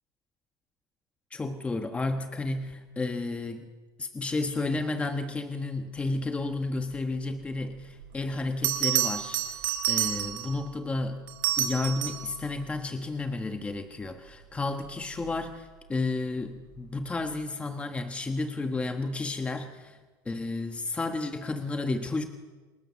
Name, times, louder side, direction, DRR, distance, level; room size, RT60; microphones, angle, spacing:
voice 1, 1.3-3.7 4.0-9.6 9.9-11.2 11.6-20.0 20.2-22.3, left 3 dB, 10° left, 6 dB, 1.3 m, -32 dB
Bell, 8.0-8.1 8.6-10.6 11.3-12.3 15.0-15.3, right 13 dB, 80° right, 4.0 m, -28 dB
28.5 x 27.0 x 7.3 m, 1.3 s
cardioid pair, 160°, 11 cm